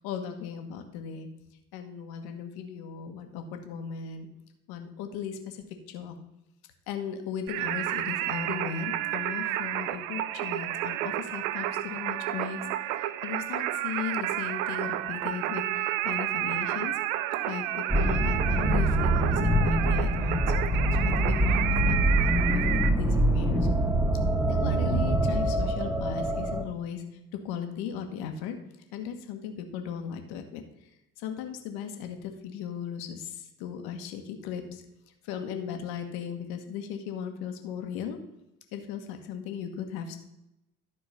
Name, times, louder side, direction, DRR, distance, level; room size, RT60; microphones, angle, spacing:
voice 1, 0.0-1.3 1.7-4.3 4.7-6.2 6.9-12.6 13.2-16.9 17.5-20.5 21.0-23.7 24.4-27.0 27.3-28.6 28.9-30.6 31.2-34.8 35.2-38.2 38.7-40.2, left 8 dB, 65° left, 6 dB, 1.5 m, -37 dB
Singing, 7.5-22.9, right 13 dB, 70° right, 0.6 m, -31 dB
sound 1, 17.9-26.6, right 1 dB, 5° right, 1.3 m, -25 dB
11.5 x 4.6 x 5.7 m, 0.88 s
hypercardioid pair, 65°, 41 cm